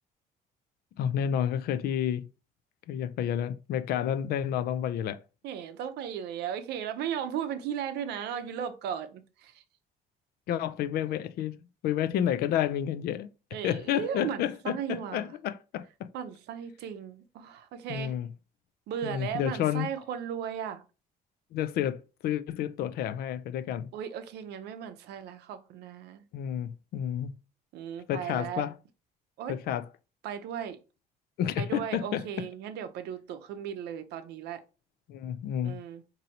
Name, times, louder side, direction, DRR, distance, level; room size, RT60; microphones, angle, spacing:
voice 1, 1.0-2.3 2.9-5.2 10.5-11.6 11.8-13.3 13.6-16.1 17.9-18.3 19.0-19.9 21.5-23.9 26.3-27.3 28.1-28.7 29.5-29.8 31.4-32.5 35.1-35.8, left 10 dB, 65° left, 0.4 m, -30 dB
voice 2, 5.4-9.6 13.5-15.3 16.1-18.1 18.9-20.8 23.9-26.2 27.7-28.7 29.4-29.5 30.2-30.8 31.6-34.6 35.6-36.0, right 9 dB, 80° right, 0.6 m, -36 dB
4.1 x 2.7 x 2.8 m
cardioid pair, 110°, 17 cm